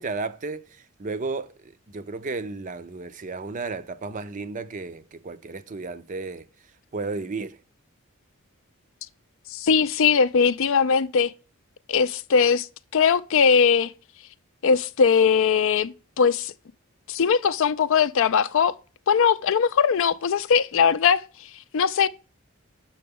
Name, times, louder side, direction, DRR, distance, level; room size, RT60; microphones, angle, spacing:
voice 1, 0.0-6.5 6.9-7.6, right 3 dB, 35° right, 0.5 m, -33 dB
voice 2, 9.5-11.3 11.9-12.7 12.9-13.9 14.6-16.5 17.1-18.7 19.1-22.1, left 6 dB, 60° left, 0.4 m, -20 dB
6.8 x 6.0 x 3.6 m
head